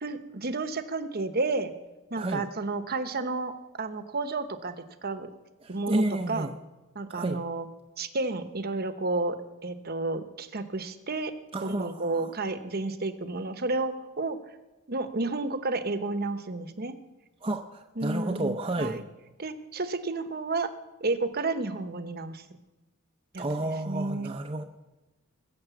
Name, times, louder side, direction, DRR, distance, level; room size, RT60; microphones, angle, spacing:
voice 1, 0.0-1.7 2.1-3.5 3.8-5.3 5.7-6.5 6.9-7.7 8.0-11.3 11.6-14.4 14.9-16.9 18.0-19.0 19.4-20.7 21.0-22.4 23.3-24.3, right 3 dB, 45° right, 10 dB, 1.1 m, -31 dB
voice 2, 5.6-6.5 7.1-7.4 11.5-12.3 17.4-19.0 23.4-24.6, right 1 dB, 25° right, 4 dB, 0.7 m, -31 dB
20.5 x 7.9 x 7.2 m, 1.1 s
head